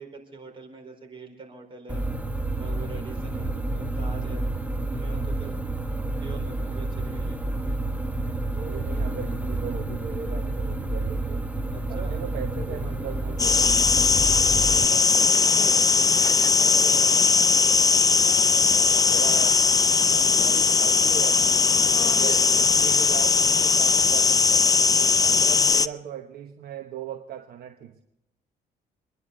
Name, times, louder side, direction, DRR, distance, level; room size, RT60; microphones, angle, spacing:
voice 1, 0.0-2.1 2.6-4.5 4.8-7.9 11.7-12.2 14.4-17.3 20.1-20.5 22.0-22.5 25.0-25.4, right 4 dB, 30° right, 1 dB, 4.7 m, -43 dB
sound 1, 1.9-14.9, right 2 dB, 10° right, 1.4 m, -29 dB
voice 2, 8.5-11.5 11.9-13.9 18.9-19.6 20.2-21.7 22.0-24.7 25.2-28.0, right 8 dB, 65° right, 5 dB, 1.2 m, -38 dB
Rain, 12.6-25.7, left 2 dB, 50° left, 7.5 m, -42 dB
sound 2, 13.4-25.9, left 5 dB, 20° left, 0.5 m, -19 dB
26.5 x 11.0 x 4.0 m, 0.84 s
cardioid pair, 100°, 17 cm